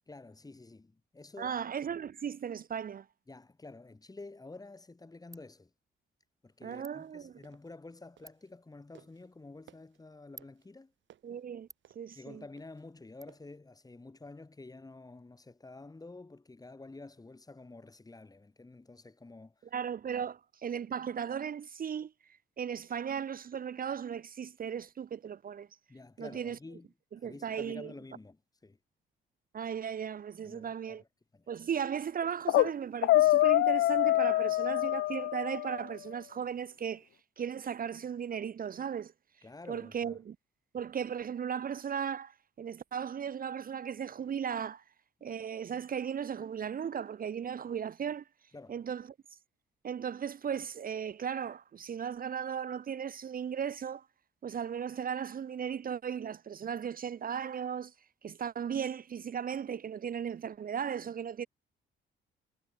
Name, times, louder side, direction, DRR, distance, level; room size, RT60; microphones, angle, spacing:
voice 1, 0.1-1.7 3.3-5.7 6.4-10.9 12.1-19.7 25.9-26.9 27.2-28.8 30.4-31.1 31.3-31.5 39.4-40.2 48.5-48.8, left 3 dB, 20° left, 3.6 m, -50 dB
voice 2, 1.4-3.1 6.6-7.3 11.2-11.7 11.9-12.4 19.7-22.1 22.6-25.7 26.2-26.6 27.2-27.9 29.5-31.0 31.5-37.1 37.4-39.1 39.7-40.4 40.7-44.8 45.2-48.3 48.7-49.1 49.8-54.1 54.4-57.9 58.2-61.5, right 8 dB, 45° right, 1.0 m, -36 dB
Ratchet pawl, 4.2-13.2, right 2 dB, 15° right, 4.1 m, -61 dB
sound 1, 6.5-8.6 8.9-13.6, right 11 dB, 70° right, 7.3 m, -61 dB
sound 2, 32.2-32.7 33.0-35.8, left 16 dB, 75° left, 0.4 m, -25 dB
cardioid pair, 90°, 20 cm